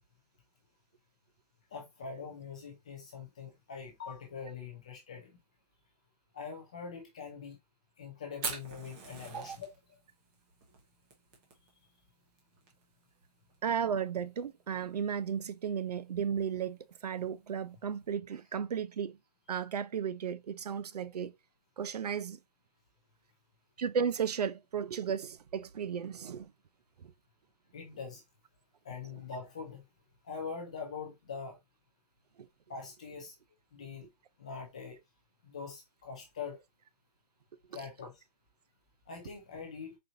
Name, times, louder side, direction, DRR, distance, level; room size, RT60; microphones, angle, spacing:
voice 1, 1.7-5.4 6.3-7.6 8.0-10.0 27.7-28.2 28.8-29.8 30.2-31.6 32.7-33.3 33.7-34.1 34.4-35.0 35.4-36.6 37.7-38.2 39.1-40.0, left 5 dB, 10° left, 0.3 m, -43 dB
Fire, 8.3-18.1, right 4 dB, 15° right, 0.7 m, -47 dB
voice 2, 13.6-19.2 19.5-21.3 21.8-22.4 23.8-26.5 27.0-27.1 32.4-32.5, right 7 dB, 75° right, 0.5 m, -34 dB
4.3 x 2.5 x 3.8 m
hypercardioid pair, 165°, 21 cm